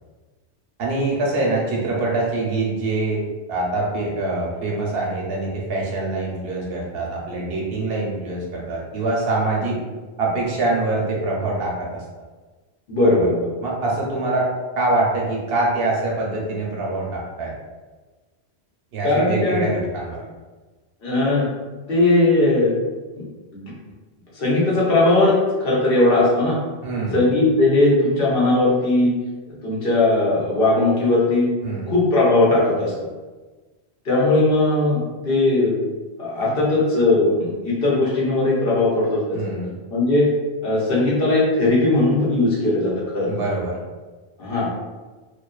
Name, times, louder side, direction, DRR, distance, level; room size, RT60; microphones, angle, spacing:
voice 1, 0.8-9.8 10.2-12.0 13.0-13.3 13.6-14.5 14.7-17.5 18.9-20.2 26.8-27.3 31.6-31.9 39.3-39.7 43.3-43.8, right 2 dB, 70° right, -3 dB, 0.8 m, -24 dB
voice 2, 12.9-13.5 19.0-19.6 21.0-21.5 21.9-22.7 23.1-23.2 23.5-23.7 24.3-26.6 27.1-29.1 29.6-31.5 31.9-33.1 34.0-35.8 36.2-39.4 39.9-40.3 40.6-43.3 44.4-44.7, left 2 dB, 60° left, -7 dB, 1.0 m, -18 dB
2.5 x 2.3 x 2.2 m, 1.3 s
omnidirectional pair, 1.1 m